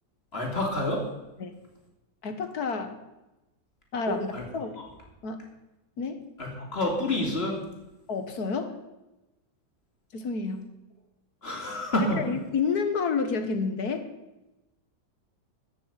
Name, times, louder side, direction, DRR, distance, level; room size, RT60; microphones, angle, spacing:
voice 1, 0.3-1.0 4.1-4.5 4.8-4.9 6.4-7.6 11.4-12.2, left 1 dB, 35° left, 0 dB, 3.5 m, -28 dB
voice 2, 2.2-3.0 3.9-4.8 5.2-5.4 6.0-6.2 8.1-8.8 10.1-10.7 12.1-14.1, left 5 dB, 60° left, 8 dB, 1.8 m, -29 dB
14.5 x 7.0 x 9.1 m, 0.99 s
omnidirectional pair, 1.9 m